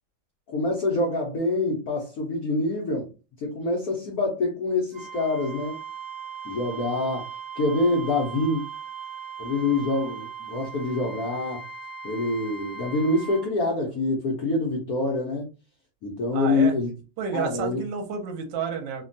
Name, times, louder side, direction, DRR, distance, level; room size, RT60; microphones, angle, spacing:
voice 1, 0.5-3.1 3.4-5.8 6.4-7.3 7.6-8.6 9.4-11.6 12.0-15.5 16.0-16.9 17.3-17.8, left 2 dB, 70° left, -1 dB, 0.8 m, -26 dB
Wind instrument woodwind instrument, 4.9-13.5, right 7 dB, 90° right, 0.6 m, -38 dB
voice 2, 16.3-16.8 17.2-19.0, right 6 dB, 70° right, 3 dB, 1.3 m, -30 dB
3.3 x 2.2 x 2.5 m, 0.31 s
omnidirectional pair, 2.3 m